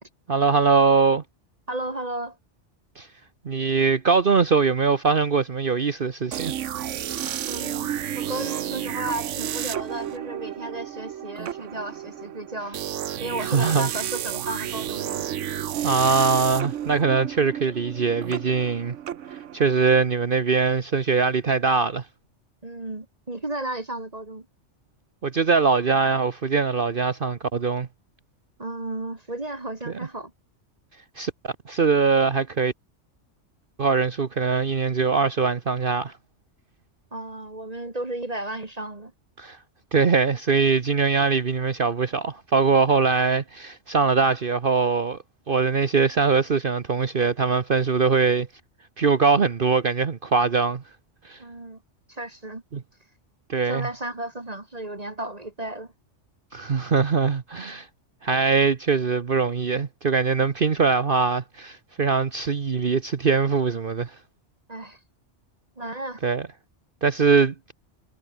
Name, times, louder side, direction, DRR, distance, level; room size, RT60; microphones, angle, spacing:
voice 1, 0.3-1.2 3.0-3.1 3.4-6.5 13.4-13.9 15.8-19.0 19.5-22.0 25.2-27.9 29.9-30.0 31.2-32.7 33.8-36.1 39.4-39.6 39.9-45.2 45.5-48.5 49.0-50.8 51.2-51.4 52.7-52.8 53.5-53.9 56.5-57.9 58.2-64.1 66.2-66.4 67.0-67.7, right 5 dB, 50° right, 1.2 m, -22 dB
voice 2, 1.7-2.4 7.5-12.8 13.2-15.3 22.6-24.5 28.6-30.3 37.1-39.1 42.0-42.1 42.9-43.0 51.4-51.8 52.1-52.6 53.6-55.9 64.7-65.0 65.8-66.2, right 1 dB, 30° right, 2.1 m, -34 dB
sound 1, 6.3-20.0, right 10 dB, 85° right, 1.1 m, -32 dB
omnidirectional pair, 1.2 m